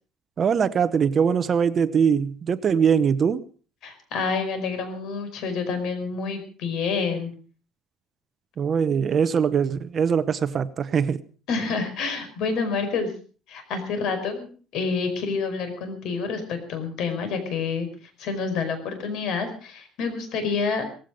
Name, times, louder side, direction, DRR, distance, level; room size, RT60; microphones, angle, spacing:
voice 1, 0.4-3.4 8.6-11.2, right 7 dB, 35° right, 0.8 m, -22 dB
voice 2, 3.8-7.3 11.5-13.1 13.5-17.9 18.2-20.8, left 5 dB, 60° left, 5.1 m, -28 dB
18.0 x 15.5 x 5.1 m
cardioid pair, 150°, 0 cm